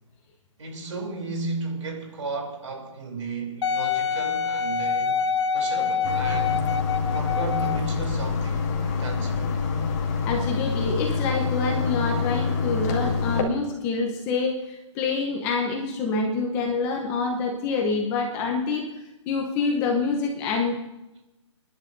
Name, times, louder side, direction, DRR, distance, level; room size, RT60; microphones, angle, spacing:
voice 1, 0.6-5.3 5.5-6.7 7.1-9.6, right 3 dB, 75° right, 3.3 m, -34 dB
Wind instrument woodwind instrument, 3.6-7.9 8.6-8.7, left 6 dB, 60° left, 0.9 m, -26 dB
sound 1, 6.0-13.4, left 5 dB, 35° left, 2.2 m, -26 dB
voice 2, 10.2-18.9 19.3-20.8, left 4 dB, 15° left, 0.8 m, -26 dB
28.5 x 11.0 x 2.6 m
hypercardioid pair, 165°, 16 cm